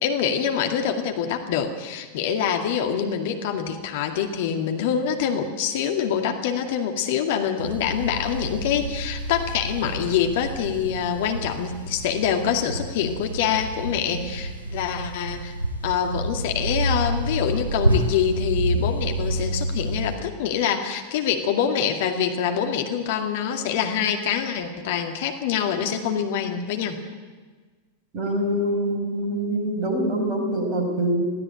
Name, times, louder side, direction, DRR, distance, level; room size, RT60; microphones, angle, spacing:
voice 1, 0.0-15.5 15.8-27.0, left 8 dB, 50° left, 4 dB, 2.2 m, -25 dB
sound 1, 7.6-20.2, right 1 dB, 80° right, 3.8 m, -29 dB
voice 2, 28.1-31.3, right 1 dB, 35° right, 3 dB, 5.2 m, -24 dB
21.0 x 15.5 x 9.0 m, 1.4 s
figure-of-eight pair, 90°, 0 cm